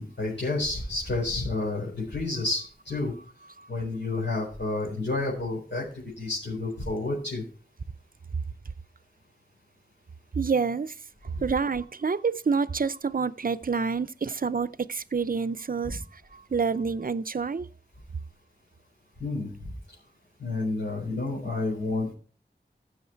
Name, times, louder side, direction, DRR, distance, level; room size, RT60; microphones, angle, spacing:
voice 1, 0.0-3.1 3.7-5.8 6.2-7.4 11.3-11.4 15.8-15.9 19.2-19.5 20.4-22.1, left 2 dB, 80° left, 4.7 m, -30 dB
voice 2, 10.3-10.9 11.2-17.7, right 5 dB, 55° right, 0.6 m, -28 dB
15.0 x 6.6 x 4.5 m
wide cardioid pair, 55°, 18 cm